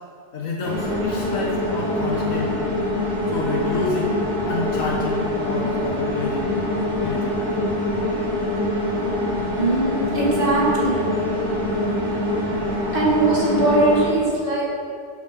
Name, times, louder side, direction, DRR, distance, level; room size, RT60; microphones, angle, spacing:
voice 1, 0.3-2.5 3.3-4.1 4.5-6.5 7.0-7.4, left 3 dB, 80° left, -2 dB, 1.8 m, -28 dB
sound 1, 0.6-14.1, left 1 dB, 55° right, 3.3 m, -24 dB
voice 2, 9.6-11.1 12.9-14.6, right 2 dB, 40° right, -6 dB, 3.3 m, -20 dB
11.5 x 8.5 x 6.4 m, 2.4 s
omnidirectional pair, 1.4 m